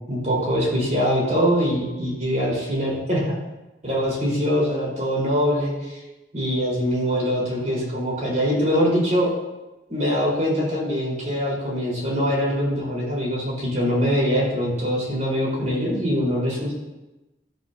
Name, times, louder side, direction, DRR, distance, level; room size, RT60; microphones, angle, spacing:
voice 1, 0.0-3.4 3.8-6.0 6.3-9.3 9.9-16.7, equal, 40° right, -5 dB, 4.5 m, -23 dB
13.5 x 12.5 x 2.8 m, 1.0 s
head